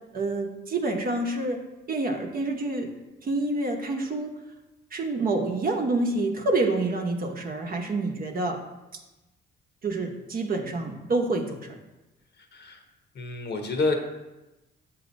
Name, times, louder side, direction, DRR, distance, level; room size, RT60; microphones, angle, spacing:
voice 1, 0.1-1.6 1.9-2.9 3.2-4.3 4.9-8.6 9.8-11.7, right 2 dB, 45° right, 3 dB, 0.9 m, -27 dB
voice 2, 12.4-12.8 13.1-13.9, left 3 dB, 55° left, 4 dB, 0.9 m, -28 dB
7.3 x 2.8 x 5.2 m, 1.0 s
cardioid pair, 90°, 20 cm